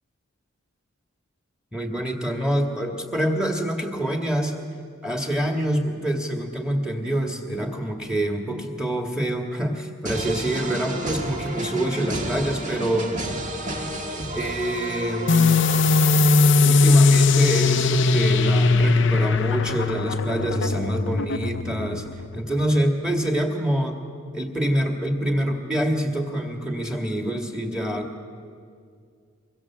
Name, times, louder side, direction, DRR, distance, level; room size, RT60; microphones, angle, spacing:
voice 1, 1.7-4.6 5.0-13.2 14.3-15.6 16.6-22.0 22.3-24.0 24.3-28.2, right 1 dB, 5° right, 2 dB, 2.1 m, -26 dB
sound 1, 10.0-17.0, right 1 dB, 35° right, 2.0 m, -31 dB
sound 2, 15.3-22.5, left 3 dB, 55° left, 0.7 m, -19 dB
24.5 x 23.0 x 7.5 m, 2.2 s
head